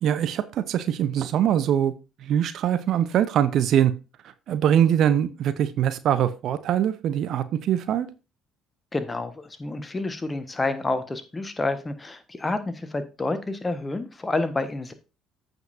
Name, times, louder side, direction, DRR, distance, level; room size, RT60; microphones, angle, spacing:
voice 1, 0.0-1.9 2.2-3.9 4.5-8.1, right 10 dB, 50° right, 13 dB, 0.7 m, -22 dB
voice 2, 8.9-14.9, left 2 dB, 20° left, 11 dB, 1.4 m, -29 dB
14.5 x 5.4 x 2.7 m, 0.30 s
figure-of-eight pair, 50°, 0 cm